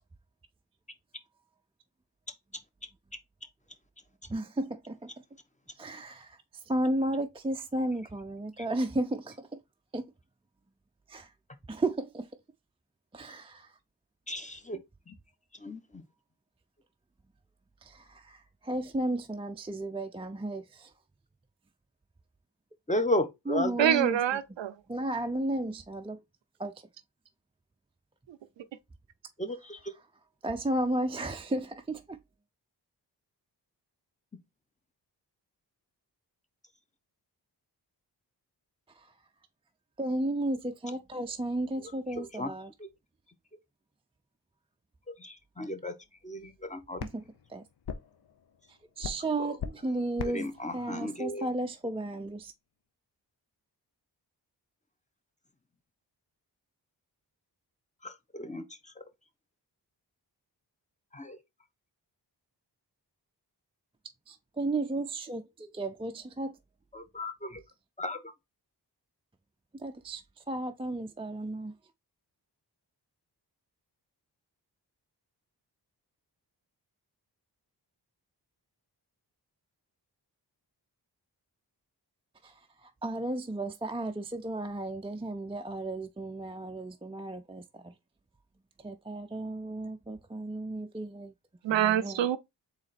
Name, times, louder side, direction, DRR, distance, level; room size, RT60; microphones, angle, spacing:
voice 1, 4.3-5.2 5.8-9.6 9.9-10.1 11.1-11.3 11.7-12.3 13.1-13.7 17.8-20.9 23.5-24.2 24.9-26.2 26.6-26.7 30.4-32.2 38.9-39.1 40.0-42.7 47.0-47.6 49.0-50.5 50.7-52.5 64.3-66.5 69.7-70.2 70.5-71.7 82.4-87.9 88.8-91.3 91.7-92.2, right 2 dB, 15° right, 0.5 m, -34 dB
voice 2, 14.3-14.8 15.1-15.2 15.5-16.0 22.9-23.9 29.4-29.9 41.8-41.9 42.2-42.5 42.8-42.9 45.2-46.0 46.2-47.0 49.4-49.5 50.2-51.5 58.0-59.0 61.1-61.4 66.9-67.6 68.0-68.2, left 1 dB, 15° left, 0.9 m, -34 dB
voice 3, 23.8-24.7 28.3-28.6 91.6-92.4, right 10 dB, 85° right, 0.6 m, -26 dB
sound 1, 46.0-52.4, left 7 dB, 60° left, 0.8 m, -43 dB
4.0 x 3.2 x 4.1 m
cardioid pair, 45°, 43 cm